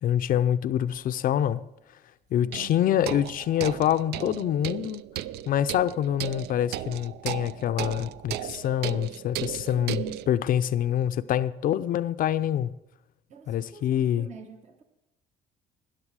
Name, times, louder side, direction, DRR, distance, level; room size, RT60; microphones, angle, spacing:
voice 1, 0.0-1.6 2.3-5.0 5.5-12.7 13.5-14.3, left 10 dB, 55° left, 0.5 m, -26 dB
sound 1, 0.9-1.0 2.5-10.3, right 13 dB, 75° right, 0.4 m, -36 dB
voice 2, 2.4-2.8 9.7-10.2 13.3-14.8, right 5 dB, 45° right, 1.2 m, -43 dB
12.5 x 10.5 x 4.8 m
cardioid pair, 110°, 17 cm